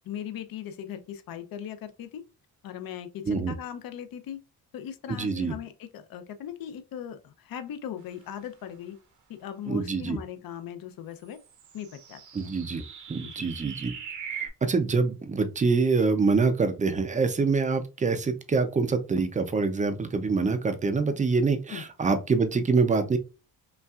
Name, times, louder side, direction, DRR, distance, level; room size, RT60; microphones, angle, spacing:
voice 1, 0.0-2.2 2.6-4.4 4.7-9.0 9.3-11.4 11.7-12.5 13.2-13.3 21.7-21.8, left 9 dB, 65° left, 0.7 m, -39 dB
voice 2, 5.1-5.5 9.7-10.2 12.3-12.8 13.1-13.9 14.6-23.2, right 4 dB, 20° right, 0.5 m, -25 dB
sound 1, 11.3-14.5, right 7 dB, 50° right, 0.8 m, -40 dB
5.5 x 2.4 x 2.4 m
cardioid pair, 125°, 39 cm